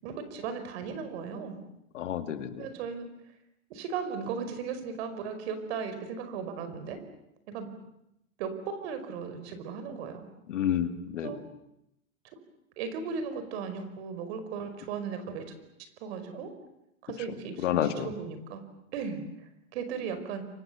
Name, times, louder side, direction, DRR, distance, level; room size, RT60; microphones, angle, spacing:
voice 1, 0.0-1.6 2.6-3.1 3.7-7.0 7.5-7.7 8.4-10.3 11.2-11.4 12.8-15.5 16.0-16.5 17.0-18.6 18.9-19.2 19.7-20.4, right 6 dB, 50° right, 9 dB, 5.1 m, -36 dB
voice 2, 1.9-2.7 10.5-11.3 17.6-18.1, left 10 dB, 60° left, 8 dB, 2.5 m, -29 dB
30.0 x 24.5 x 6.9 m, 0.82 s
hypercardioid pair, 115°, 41 cm